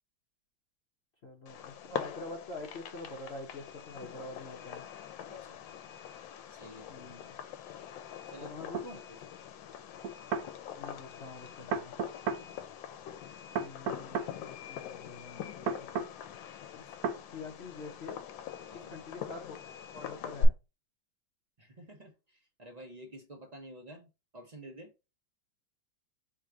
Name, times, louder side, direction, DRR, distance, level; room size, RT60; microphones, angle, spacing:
voice 1, 1.2-4.9 6.9-7.4 8.4-9.0 10.8-11.9 13.6-15.9 16.7-16.8 17.3-18.2 18.7-19.6 19.9-20.5, left 2 dB, 55° left, 0.7 m, -46 dB
Fireworks, 1.5-20.5, left 5 dB, 80° left, 1.3 m, -42 dB
voice 2, 5.3-5.6 6.5-6.9 8.3-8.5 8.9-9.2 10.3-10.5 18.7-18.9 21.6-24.9, right 1 dB, 45° right, 0.5 m, -50 dB
sound 1, 8.7-8.9 10.0-10.5 11.7-12.4 13.6-14.3 15.7-16.1 17.0-17.2, right 5 dB, 75° right, 0.9 m, -33 dB
3.6 x 2.6 x 4.5 m
omnidirectional pair, 2.1 m